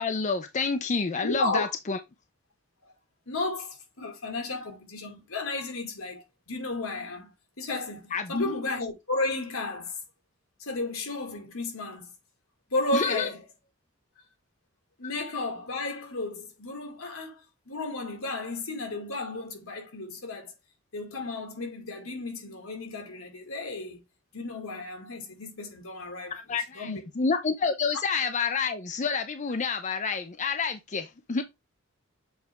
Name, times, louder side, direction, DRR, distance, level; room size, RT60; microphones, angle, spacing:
voice 1, 0.0-2.0 8.1-8.5 12.9-13.3 26.3-31.4, left 5 dB, 35° left, 0.6 m, -28 dB
voice 2, 1.2-1.7 2.8-2.9 3.3-7.3 7.6-10.0 10.6-12.1 12.7-13.4 15.0-20.5 20.9-24.0 24.3-26.4 26.7-27.1, left 2 dB, 80° left, 2.2 m, -33 dB
7.1 x 4.2 x 3.5 m
head